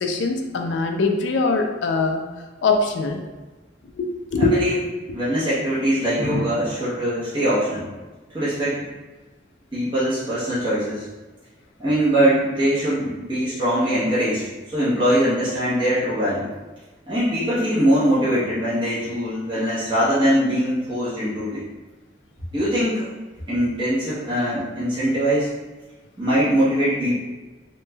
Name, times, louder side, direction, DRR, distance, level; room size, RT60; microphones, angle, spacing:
voice 1, 0.0-2.3 2.6-3.2 4.0-4.6, left 3 dB, 80° left, 4 dB, 0.4 m, -22 dB
voice 2, 4.4-4.8 5.1-7.9 8.3-8.9 9.7-11.1 11.8-16.5 17.1-21.6 22.5-23.1 23.5-25.5 26.2-27.1, equal, 25° right, -12 dB, 0.9 m, -22 dB
3.1 x 3.1 x 2.3 m, 1.2 s
head